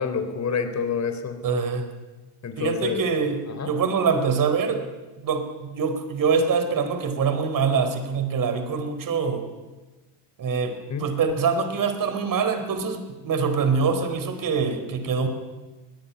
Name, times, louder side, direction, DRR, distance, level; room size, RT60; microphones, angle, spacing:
voice 1, 0.0-1.4 2.4-3.0 3.5-3.7 10.9-11.1, left 6 dB, 35° left, 9 dB, 4.0 m, -28 dB
voice 2, 1.4-1.9 2.6-4.9 5.2-9.5 10.4-15.3, right 5 dB, 45° right, 9 dB, 4.4 m, -24 dB
23.0 x 18.5 x 9.9 m, 1.2 s
cardioid pair, 105°, 47 cm